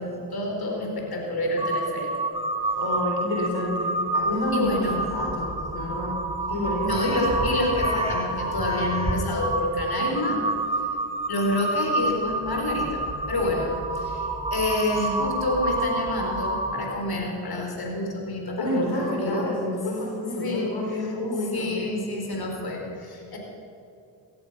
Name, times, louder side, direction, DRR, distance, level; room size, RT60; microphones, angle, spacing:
voice 1, 0.0-2.1 4.5-5.0 6.8-10.4 11.3-19.4 20.4-20.8 21.5-23.4, left 1 dB, 50° left, 1 dB, 4.2 m, -28 dB
Crow, 1.6-17.1, right 2 dB, 10° right, 2.9 m, -28 dB
voice 2, 2.8-6.2 6.5-7.0 9.9-10.4 18.6-21.9, left 1 dB, 70° left, -1 dB, 4.0 m, -29 dB
18.0 x 14.0 x 5.7 m, 2.7 s
supercardioid pair, 50°, 48 cm